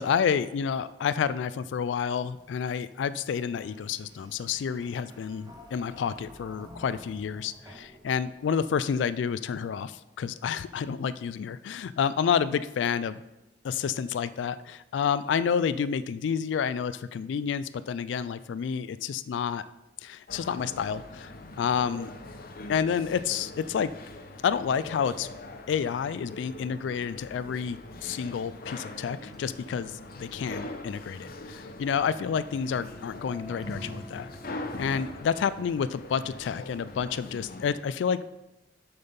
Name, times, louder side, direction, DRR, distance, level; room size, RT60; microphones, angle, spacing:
voice 1, 0.0-13.2 13.6-19.6 20.0-21.3 21.6-22.1 22.7-23.9 24.4-25.3 25.7-38.2, left 7 dB, 75° left, 15 dB, 0.3 m, -29 dB
sound 1, 2.3-9.0, equal, 20° right, 1.1 m, -51 dB
sound 2, 20.3-37.7, left 2 dB, 55° left, 0.8 m, -42 dB
sound 3, 29.3-34.5, right 1 dB, ahead, 0.6 m, -53 dB
7.8 x 5.5 x 5.3 m, 0.98 s
head